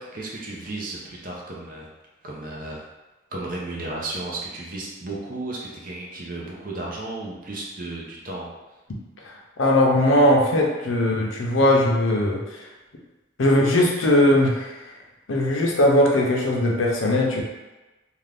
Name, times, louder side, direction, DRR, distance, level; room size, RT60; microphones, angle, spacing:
voice 1, 0.0-1.9 2.2-2.9 3.3-8.5, right 2 dB, 45° right, -3 dB, 0.6 m, -34 dB
voice 2, 9.2-12.7 13.4-14.9 15.3-17.4, left 1 dB, 85° left, -1 dB, 0.6 m, -20 dB
2.5 x 2.4 x 3.3 m, 1.1 s
head